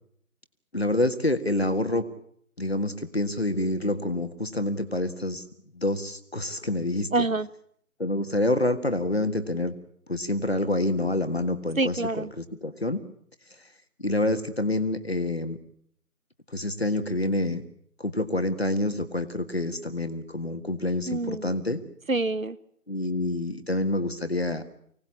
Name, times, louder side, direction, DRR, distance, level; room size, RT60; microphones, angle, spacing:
voice 1, 0.7-2.1 2.6-5.4 5.7-7.1 8.0-9.7 10.1-13.0 14.0-15.6 16.5-17.6 18.0-21.8 22.9-24.6, left 1 dB, 45° left, 10 dB, 1.7 m, -27 dB
voice 2, 7.1-7.5 11.8-12.3 21.1-21.5 22.1-22.6, right 2 dB, 60° right, 18 dB, 1.0 m, -26 dB
25.0 x 18.0 x 8.6 m, 0.67 s
figure-of-eight pair, 170°, 44 cm